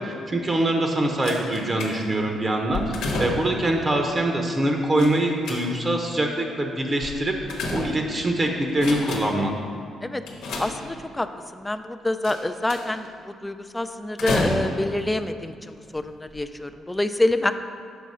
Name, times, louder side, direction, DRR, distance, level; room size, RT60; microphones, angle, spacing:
voice 1, 0.0-7.3 7.7-9.6, right 1 dB, 30° right, 2 dB, 0.8 m, -24 dB
sound 1, 1.2-2.3 2.7-3.7 5.0-6.0 7.0-8.3 8.7-9.5 10.3-11.2 12.2-13.1 14.2-15.0 15.8-16.0 16.3-16.4, left 2 dB, 85° left, 1.0 m, -30 dB
voice 2, 10.6-11.3 11.5-17.5, left 1 dB, 10° left, 9 dB, 0.3 m, -27 dB
6.3 x 4.5 x 5.4 m, 2.2 s
cardioid pair, 90°, 0 cm